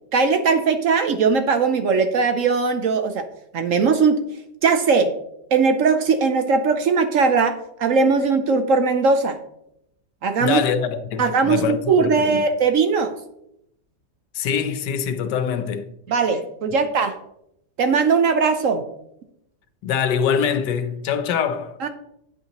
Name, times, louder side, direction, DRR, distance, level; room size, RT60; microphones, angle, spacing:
voice 1, 0.1-3.3 3.5-4.2 4.6-5.1 5.5-9.4 10.2-10.6 11.2-13.1 16.1-17.2 17.8-18.8 21.8-21.9, right 5 dB, 60° right, 0.9 m, -19 dB
voice 2, 10.4-12.4 14.3-15.9 19.8-21.8, left 7 dB, 90° left, 1.4 m, -24 dB
9.4 x 8.2 x 3.0 m
omnidirectional pair, 1.8 m